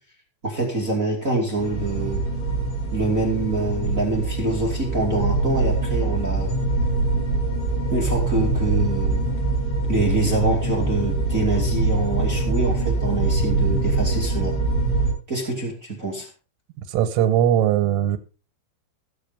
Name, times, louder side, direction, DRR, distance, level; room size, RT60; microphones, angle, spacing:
voice 1, 0.4-2.3 2.9-6.5 7.9-9.3 9.9-14.6 15.3-16.3, right 2 dB, 25° right, 2.1 m, -25 dB
sound 1, 1.6-15.1, right 2 dB, 75° left, 7.9 m, -23 dB
voice 2, 16.9-18.2, right 10 dB, 90° right, 3.6 m, -19 dB
15.5 x 7.8 x 5.1 m
omnidirectional pair, 5.7 m